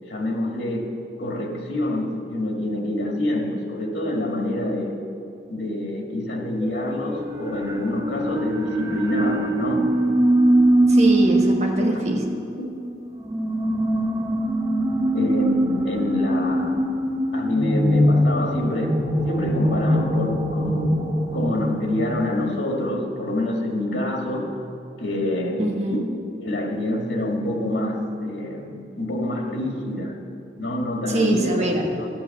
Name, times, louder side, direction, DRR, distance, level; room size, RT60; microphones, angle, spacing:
voice 1, 0.1-0.9 1.2-5.0 5.5-9.9 11.9-12.0 12.6-12.7 15.1-16.9 17.3-19.0 19.3-24.5 25.0-25.8 26.4-30.2 30.6-32.1, left 1 dB, 85° left, 1 dB, 2.0 m, -26 dB
sound 1, 6.6-22.9, right 1 dB, 20° right, 0.8 m, -22 dB
voice 2, 10.9-12.2 25.6-26.1 31.1-31.9, right 1 dB, 40° right, 1 dB, 1.4 m, -23 dB
13.5 x 8.6 x 7.2 m, 2.5 s
head